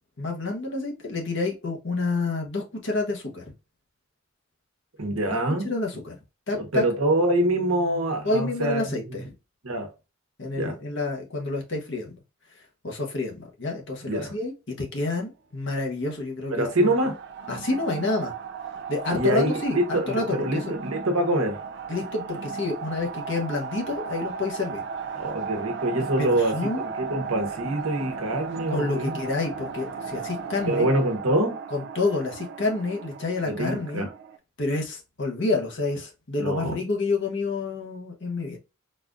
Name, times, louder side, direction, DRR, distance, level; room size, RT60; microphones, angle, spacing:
voice 1, 0.2-3.5 5.6-6.2 6.5-6.8 8.2-9.2 10.4-12.2 12.5-16.9 17.5-18.3 18.9-20.7 21.9-24.8 26.2-26.9 28.7-30.9 31.7-34.1 34.6-38.6, left 3 dB, 55° left, 1.0 m, -28 dB
voice 2, 5.0-5.7 6.5-8.8 9.6-9.9 10.5-10.7 14.1-14.3 16.5-17.2 19.1-21.6 25.1-29.2 30.7-31.6 33.4-34.1 36.4-36.8, right 1 dB, 75° right, 1.0 m, -25 dB
sound 1, 16.7-34.4, right 5 dB, 50° right, 0.3 m, -36 dB
4.1 x 2.5 x 2.5 m
head